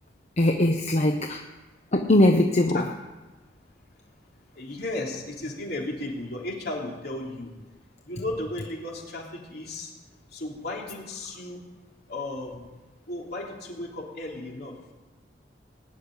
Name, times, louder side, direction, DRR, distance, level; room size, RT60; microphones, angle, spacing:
voice 1, 0.4-1.4 1.9-2.9, left 1 dB, 40° left, 4 dB, 0.9 m, -21 dB
voice 2, 4.5-7.5 8.1-9.9 10.3-11.6 12.1-12.7 13.1-14.7, left 2 dB, 60° left, -1 dB, 3.4 m, -34 dB
19.5 x 6.7 x 9.9 m, 1.2 s
head